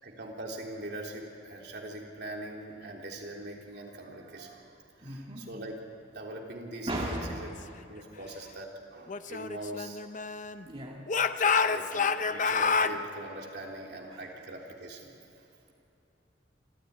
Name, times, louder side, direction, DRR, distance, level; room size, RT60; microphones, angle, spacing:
voice 1, 0.0-5.8 6.1-7.5 7.9-10.0 11.4-15.1, right 1 dB, 65° right, 0 dB, 3.4 m, -42 dB
voice 2, 5.0-5.5 6.9-7.5 10.6-11.0 14.1-14.2, right 1 dB, 30° right, -2 dB, 2.1 m, -36 dB
Speech / Shout, 9.1-10.6 11.1-13.0, left 5 dB, 45° left, 0.7 m, -28 dB
26.5 x 14.5 x 9.4 m, 2.9 s
head